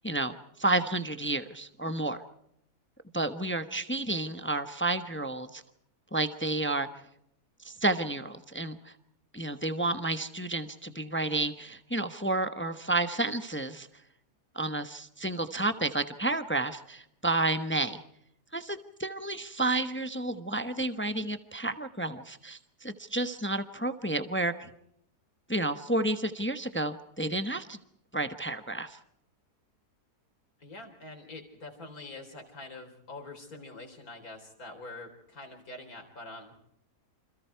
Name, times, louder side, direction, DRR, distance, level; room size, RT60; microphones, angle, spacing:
voice 1, 0.0-2.2 3.1-5.6 6.1-6.9 7.6-8.9 9.3-13.9 14.5-18.0 18.5-24.7 25.5-27.8 28.1-29.0, right 2 dB, 10° left, 9 dB, 0.8 m, -31 dB
voice 2, 30.6-36.6, left 2 dB, 60° left, 4 dB, 4.5 m, -45 dB
28.5 x 26.5 x 4.6 m, 0.74 s
omnidirectional pair, 1.7 m